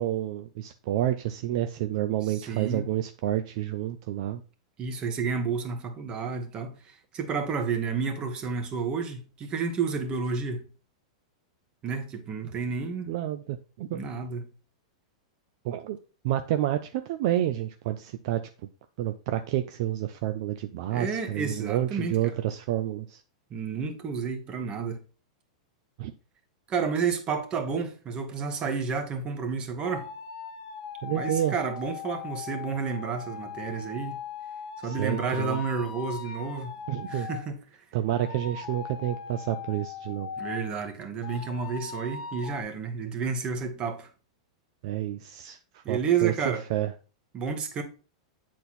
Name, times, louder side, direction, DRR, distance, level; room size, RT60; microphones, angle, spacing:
voice 1, 0.0-4.4 13.1-14.0 15.6-16.0 16.2-18.4 19.0-23.2 26.0-26.1 31.0-31.5 34.8-35.6 36.9-37.3 37.9-40.3 44.8-46.3 46.7-46.9, right 12 dB, 60° right, 0.5 m, -29 dB
voice 2, 2.2-2.8 4.8-10.6 11.8-13.1 13.9-14.4 20.9-22.3 23.5-25.0 26.7-30.1 31.1-34.2 34.8-36.8 37.1-37.6 40.4-44.1 45.8-46.6 47.3-47.8, right 5 dB, 30° right, 1.6 m, -31 dB
sound 1, 29.8-37.5 38.1-40.8 41.2-42.6, left 7 dB, 65° left, 1.3 m, -39 dB
8.2 x 4.2 x 4.2 m
hypercardioid pair, 125°, 3 cm